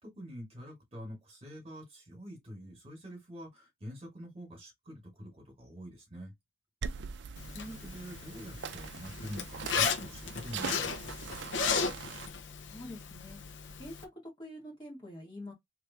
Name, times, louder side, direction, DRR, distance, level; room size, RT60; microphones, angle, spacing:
voice 1, 0.0-6.3 7.5-11.0, equal, 30° right, 1.9 m, -46 dB
sound 1, 6.8-12.3, right 6 dB, 65° right, 0.4 m, -42 dB
Zipper (clothing), 7.4-14.0, left 5 dB, 75° left, 0.7 m, -35 dB
voice 2, 12.7-13.4 13.8-14.0 14.4-15.5, left 1 dB, 25° left, 1.9 m, -45 dB
3.4 x 3.2 x 2.8 m
head